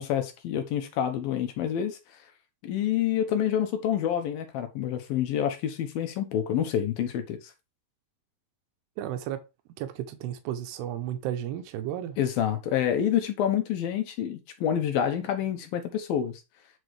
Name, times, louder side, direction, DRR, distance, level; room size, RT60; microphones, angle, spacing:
voice 1, 0.0-2.0 2.6-7.5 12.2-16.4, left 9 dB, 75° left, 2.7 m, -28 dB
voice 2, 9.0-9.4 9.8-12.2, right 11 dB, 90° right, 2.9 m, -33 dB
8.9 x 6.2 x 3.3 m
omnidirectional pair, 4.6 m